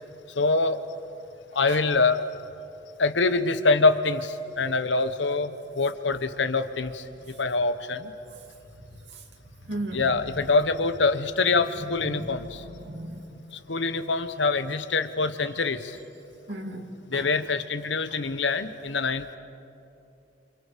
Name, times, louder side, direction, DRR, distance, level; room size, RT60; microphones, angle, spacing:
voice 1, 0.4-0.8 1.5-2.2 3.0-8.1 9.9-12.6 13.5-16.0 17.1-19.4, left 3 dB, 80° left, 11 dB, 1.1 m, -25 dB
voice 2, 9.7-10.1 12.0-13.3 16.5-17.3, right 1 dB, 65° right, 3 dB, 2.4 m, -36 dB
28.5 x 28.0 x 5.2 m, 2.8 s
head